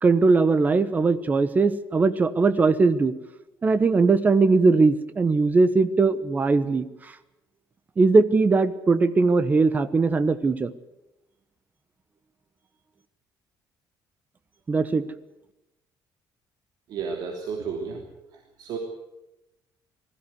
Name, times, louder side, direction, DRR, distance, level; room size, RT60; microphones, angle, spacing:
voice 1, 0.0-3.1 3.6-6.8 8.0-10.7 14.7-15.0, right 4 dB, 20° right, 13 dB, 1.1 m, -20 dB
voice 2, 16.9-18.0 18.6-18.8, right 5 dB, 60° right, 1 dB, 3.1 m, -31 dB
20.5 x 15.5 x 9.7 m, 0.95 s
cardioid pair, 160°, 8 cm